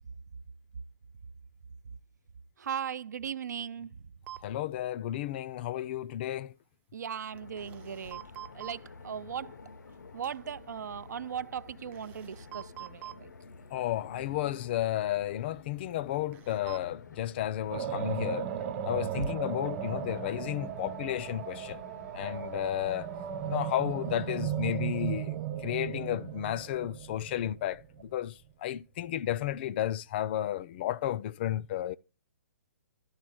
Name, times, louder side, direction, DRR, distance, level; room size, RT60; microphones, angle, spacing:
voice 1, 2.6-4.0 6.9-8.2 8.5-9.6 10.1-13.3 19.2-19.3, right 8 dB, 80° right, 0.5 m, -37 dB
sound 1, 4.3-4.4 7.4-8.8 10.2-10.3 11.9-13.2 16.3-16.8, right 14 dB, 15° right, 0.4 m, -45 dB
voice 2, 4.4-6.5 13.7-18.5 18.8-21.8 22.1-23.1 23.5-25.4 25.6-28.3 28.6-32.0, left 12 dB, 35° left, 0.4 m, -32 dB
sound 2, 7.3-24.5, left 4 dB, 90° left, 0.8 m, -50 dB
sound 3, 17.7-27.8, right 10 dB, 40° right, 1.0 m, -36 dB
12.0 x 4.0 x 7.7 m
hypercardioid pair, 150°, 9 cm